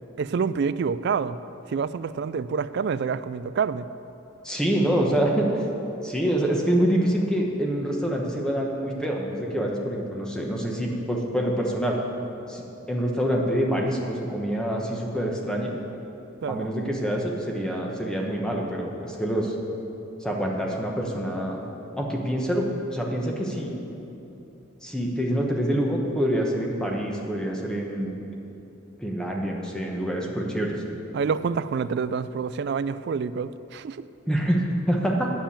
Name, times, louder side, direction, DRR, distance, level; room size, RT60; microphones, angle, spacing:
voice 1, 0.2-1.4 1.7-3.9 16.4-16.7 31.1-34.1, right 5 dB, 50° right, 15 dB, 0.3 m, -27 dB
voice 2, 4.4-5.5 6.0-12.0 12.5-15.8 16.5-19.5 20.2-21.6 22.0-23.7 24.8-28.1 29.0-30.8 34.3-35.3, equal, 5° left, -1 dB, 1.1 m, -26 dB
9.2 x 7.3 x 8.7 m, 3.0 s
head